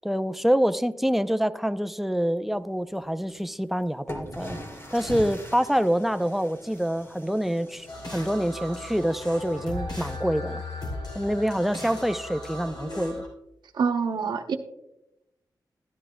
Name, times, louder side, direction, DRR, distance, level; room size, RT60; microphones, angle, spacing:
voice 1, 0.0-4.6 4.9-10.6 11.1-13.2, equal, 5° right, 11 dB, 0.4 m, -26 dB
sound 1, 3.3-3.4 4.1-9.7, equal, 40° left, 3.5 m, -41 dB
sound 2, 7.9-13.3, left 2 dB, 75° left, 3.2 m, -36 dB
voice 2, 13.8-14.5, right 5 dB, 85° right, 6 dB, 0.8 m, -25 dB
13.0 x 10.5 x 2.2 m, 0.88 s
cardioid pair, 70°, 7 cm